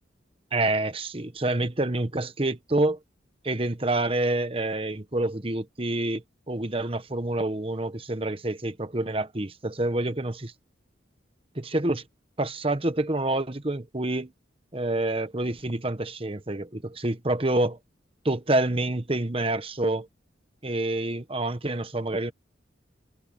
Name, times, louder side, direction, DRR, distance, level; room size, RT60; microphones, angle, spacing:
voice 1, 0.5-3.0 3.4-10.5 11.5-12.0 12.4-14.3 14.7-17.8 18.2-20.1 20.6-22.3, right 2 dB, 30° right, 1.2 m, -27 dB
head